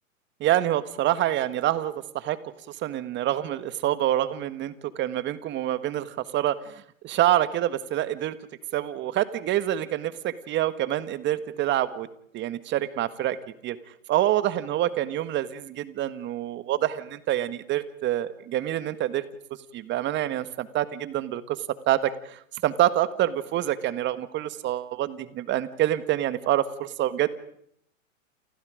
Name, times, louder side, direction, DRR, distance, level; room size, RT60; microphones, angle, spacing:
voice 1, 0.4-2.4 2.8-6.6 7.0-8.4 8.7-12.1 12.3-13.4 13.6-13.8 14.1-19.2 19.7-21.6 21.9-27.3, right 13 dB, 25° right, 14 dB, 1.7 m, -26 dB
29.5 x 28.5 x 5.1 m, 0.70 s
hypercardioid pair, 125°, 40 cm